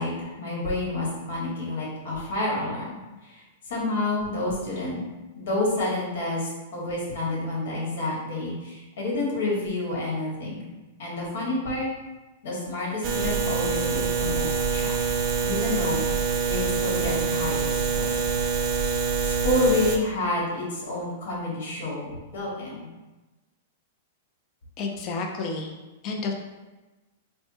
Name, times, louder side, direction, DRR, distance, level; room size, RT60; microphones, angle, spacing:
voice 1, 0.0-3.0 3.2-5.0 5.3-10.6 11.0-11.9 12.4-14.9 15.4-16.0 16.5-18.2 19.2-22.9, left 2 dB, 70° left, -4 dB, 1.5 m, -29 dB
sound 1, 13.0-20.0, right 5 dB, 30° right, 0.4 m, -25 dB
voice 2, 24.8-25.7 26.0-26.3, left 4 dB, 30° left, 2 dB, 0.5 m, -30 dB
3.3 x 2.1 x 4.1 m, 1.2 s
supercardioid pair, 165°, 0 cm